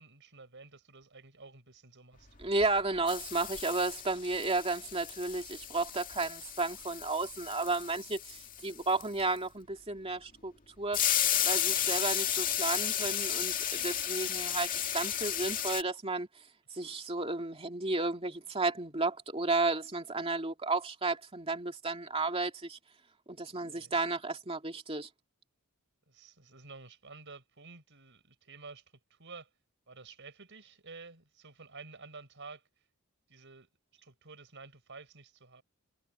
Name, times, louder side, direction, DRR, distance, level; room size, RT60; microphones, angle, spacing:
voice 1, 0.0-2.4 11.7-11.9 23.7-24.0 26.1-29.5 29.9-32.9 33.3-35.6, right 4 dB, 55° right, 6.1 m, -51 dB
sound 1, 2.4-2.8 3.1-9.4 10.9-15.8, left 10 dB, 40° left, 2.2 m, -33 dB
voice 2, 2.4-11.0 11.4-16.3 16.7-22.8 23.3-25.1, right 3 dB, 25° right, 2.4 m, -33 dB
head